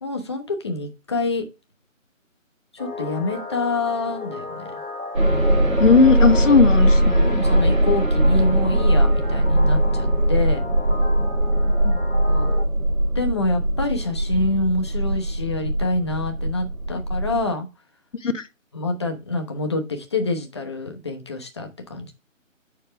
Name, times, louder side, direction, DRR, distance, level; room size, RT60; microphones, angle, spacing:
voice 1, 0.0-1.4 2.7-4.6 7.1-10.6 12.3-12.6 13.1-17.7 18.7-22.1, left 2 dB, 20° left, 0.9 m, -26 dB
sound 1, 2.8-12.7, left 3 dB, 90° left, 2.0 m, -35 dB
sound 2, 5.1-17.5, right 1 dB, 80° right, 3.7 m, -20 dB
voice 2, 5.8-7.3 11.7-12.0 17.0-17.1 18.2-18.5, left 5 dB, 65° left, 1.2 m, -18 dB
8.9 x 6.8 x 3.3 m
figure-of-eight pair, 160°, 40 cm